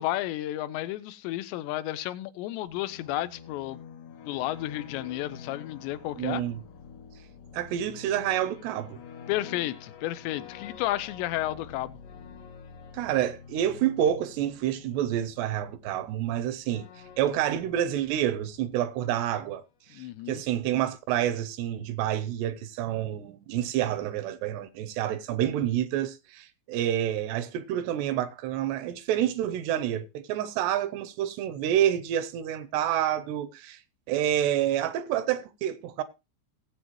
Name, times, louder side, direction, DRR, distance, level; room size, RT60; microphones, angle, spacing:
voice 1, 0.0-3.8 4.3-6.4 9.3-12.0 19.9-20.4, left 15 dB, 85° left, 3.0 m, -32 dB
sound 1, 2.7-19.3, left 6 dB, 60° left, 2.5 m, -48 dB
voice 2, 6.2-6.6 7.5-9.0 12.9-16.9 17.2-19.6 19.9-33.8 34.1-36.0, right 11 dB, 80° right, 2.8 m, -28 dB
18.0 x 8.2 x 3.1 m
omnidirectional pair, 5.0 m